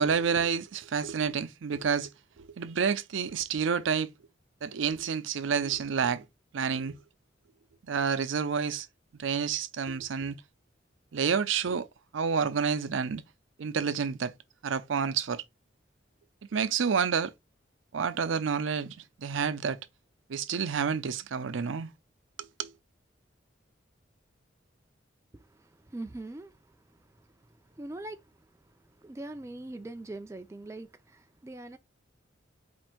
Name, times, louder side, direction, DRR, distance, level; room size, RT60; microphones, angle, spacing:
voice 1, 0.0-2.1 2.4-4.1 4.6-6.3 6.5-7.0 7.8-8.9 9.2-10.4 11.1-11.9 12.1-13.2 13.6-14.3 14.6-15.4 16.5-17.3 17.9-19.8 20.3-21.9 22.4-22.7, right 6 dB, 90° right, 0.5 m, -29 dB
voice 2, 25.3-31.8, right 2 dB, 15° right, 0.3 m, -43 dB
4.4 x 2.5 x 4.4 m
head